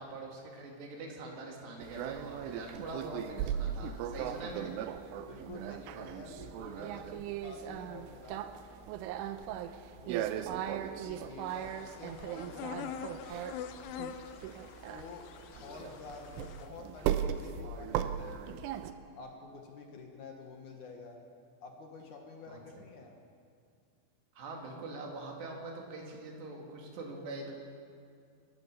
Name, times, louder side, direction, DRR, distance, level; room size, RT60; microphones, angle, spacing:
voice 1, 0.0-4.7 15.8-16.2 22.5-22.8 24.4-27.5, right 2 dB, 60° right, 0 dB, 4.7 m, -44 dB
sound 1, 1.8-18.9, right 10 dB, 85° right, 3.3 m, -38 dB
voice 2, 5.2-8.5 9.3-9.4 9.9-13.4 14.9-18.6 19.2-21.2 21.6-23.1, left 4 dB, 60° left, 2 dB, 2.0 m, -49 dB
sound 2, 11.5-16.7, left 9 dB, 80° left, 3.2 m, -45 dB
26.5 x 15.5 x 7.0 m, 2.4 s
omnidirectional pair, 5.8 m